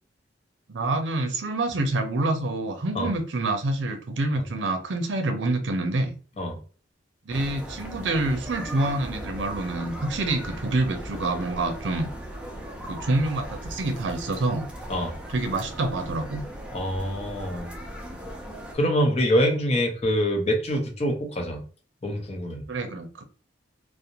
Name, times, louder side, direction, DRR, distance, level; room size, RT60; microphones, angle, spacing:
voice 1, 0.7-6.1 7.3-12.1 12.8-14.7 15.3-16.4 22.7-23.2, right 2 dB, 80° right, 6 dB, 0.5 m, -27 dB
sound 1, 7.3-18.7, right 1 dB, 5° right, 0.4 m, -38 dB
voice 2, 16.7-17.7 18.7-21.6 22.0-22.6, equal, 35° left, 2 dB, 0.6 m, -25 dB
2.5 x 2.0 x 2.8 m, 0.39 s
head